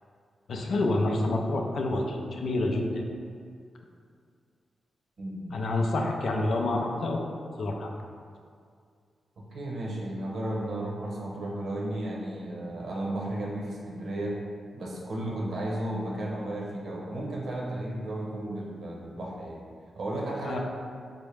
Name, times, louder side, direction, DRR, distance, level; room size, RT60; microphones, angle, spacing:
voice 1, 0.5-3.0 5.5-7.3 7.6-7.9 20.4-20.6, left 2 dB, 75° left, 1 dB, 0.4 m, -28 dB
voice 2, 5.2-5.6 9.5-14.4 14.7-19.6 20.0-20.6, right 1 dB, 70° right, -3 dB, 0.7 m, -34 dB
4.5 x 2.1 x 3.3 m, 2.2 s
cardioid pair, 55°, 0 cm